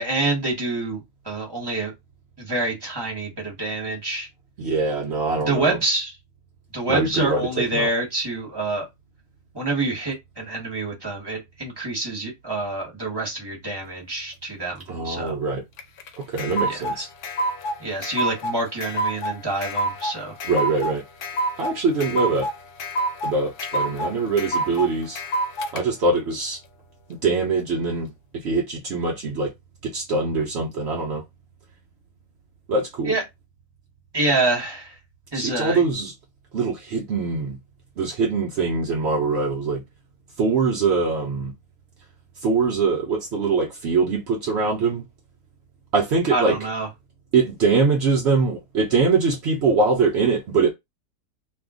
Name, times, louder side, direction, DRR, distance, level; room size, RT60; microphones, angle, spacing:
voice 1, 0.0-1.9 2.4-4.3 5.4-6.1 6.7-8.9 9.5-15.4 16.7-16.8 17.8-20.3 33.0-33.2 34.1-34.9 35.3-35.8 46.3-46.9, right 2 dB, 15° right, 0.9 m, -26 dB
voice 2, 4.6-5.8 6.9-7.9 14.9-15.6 16.2-17.1 20.5-21.0 21.6-22.5 23.2-25.2 25.7-26.6 27.2-29.5 29.8-31.2 32.7-33.1 35.3-36.1 36.5-37.6 38.0-39.8 40.4-41.5 42.4-45.0 45.9-46.6 47.3-50.7, right 4 dB, 75° right, 0.6 m, -23 dB
sound 1, 15.8-25.8, right 1 dB, 70° left, 1.0 m, -27 dB
2.7 x 2.4 x 3.6 m
omnidirectional pair, 1.8 m